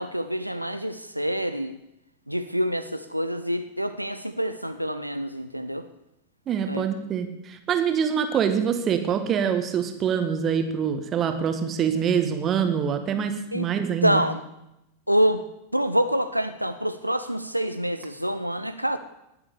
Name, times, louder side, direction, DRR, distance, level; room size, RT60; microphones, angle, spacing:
voice 1, 0.0-1.8 2.3-5.9 6.7-6.9 13.5-13.7 14.0-14.4 15.1-15.4 15.7-19.0, equal, 90° right, 9 dB, 0.6 m, -26 dB
voice 2, 6.5-14.2, right 7 dB, 30° right, 7 dB, 1.8 m, -25 dB
19.5 x 7.3 x 6.8 m, 0.87 s
figure-of-eight pair, 90°, 0 cm